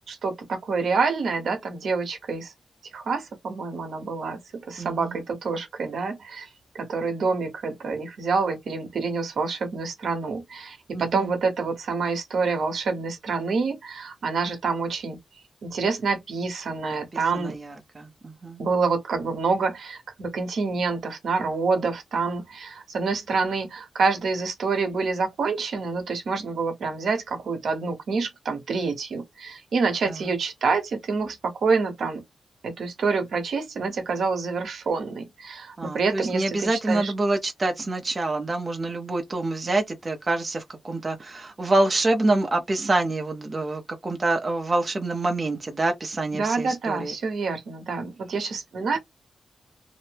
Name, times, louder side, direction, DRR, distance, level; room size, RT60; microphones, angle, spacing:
voice 1, 0.1-2.5 2.9-4.4 4.7-6.5 6.7-15.2 15.6-17.6 18.6-32.2 32.6-37.1 46.3-49.0, right 4 dB, 75° right, 0.9 m, -27 dB
voice 2, 35.8-47.1, right 2 dB, 30° right, 0.6 m, -26 dB
2.8 x 2.0 x 3.2 m
wide cardioid pair, 155°, 0 cm